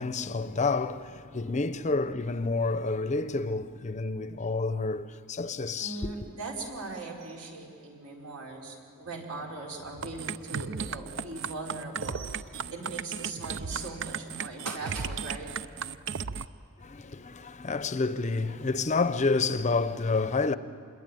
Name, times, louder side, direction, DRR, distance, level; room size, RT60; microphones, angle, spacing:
voice 1, 0.0-6.1 16.8-20.6, left 3 dB, 35° left, 0.6 m, -29 dB
voice 2, 5.8-15.7, right 3 dB, 75° right, 4.6 m, -39 dB
sound 1, 10.0-16.4, right 6 dB, 55° right, 0.6 m, -35 dB
26.5 x 21.5 x 9.1 m
head